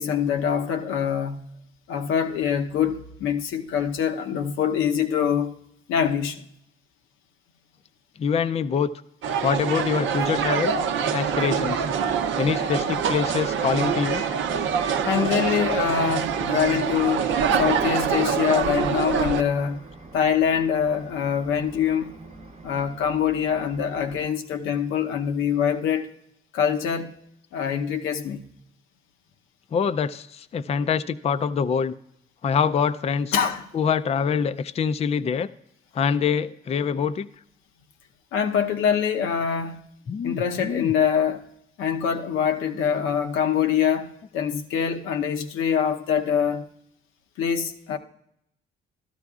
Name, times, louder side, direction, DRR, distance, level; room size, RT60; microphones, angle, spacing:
voice 1, 0.0-1.4 1.9-5.5 5.9-6.5 15.0-17.3 17.6-19.8 20.1-22.1 22.6-26.1 26.5-27.1 27.5-28.4 33.3-33.7 38.3-39.8 40.2-41.4 41.8-46.6 47.4-48.0, left 8 dB, 90° left, 0.8 m, -24 dB
voice 2, 8.2-8.9 9.4-10.7 11.1-11.8 12.4-14.2 29.7-32.0 32.4-33.3 33.7-35.5 35.9-37.3 40.1-40.9, left 6 dB, 30° left, 0.4 m, -25 dB
sound 1, 9.2-19.4, right 7 dB, 75° right, 0.7 m, -25 dB
sound 2, 11.2-24.3, right 3 dB, 35° right, 0.9 m, -44 dB
13.5 x 12.5 x 2.4 m
cardioid pair, 90°, 20 cm